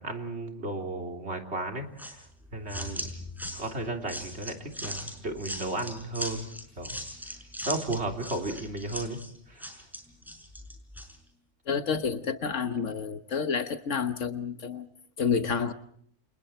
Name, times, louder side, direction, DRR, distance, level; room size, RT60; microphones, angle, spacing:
voice 1, 0.0-2.2 2.5-3.1 3.5-6.5 6.8-6.9 7.7-9.2 9.5-9.7, right 2 dB, 60° right, 3 dB, 3.7 m, -34 dB
sound 1, 2.0-11.2, equal, ahead, 5.7 m, -39 dB
voice 2, 11.7-14.9 15.2-15.7, left 6 dB, 80° left, 8 dB, 1.6 m, -29 dB
29.0 x 28.0 x 4.4 m, 0.65 s
omnidirectional pair, 1.3 m